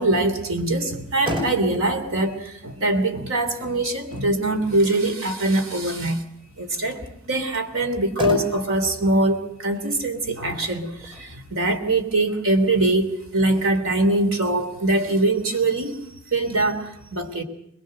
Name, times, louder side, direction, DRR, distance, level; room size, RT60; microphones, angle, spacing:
voice 1, 0.0-6.3 6.6-16.0 16.3-17.4, right 2 dB, 65° right, 7 dB, 3.4 m, -23 dB
Motor vehicle (road), 0.9-13.8, left 1 dB, 25° right, 5.1 m, -38 dB
25.5 x 21.5 x 6.7 m, 0.76 s
head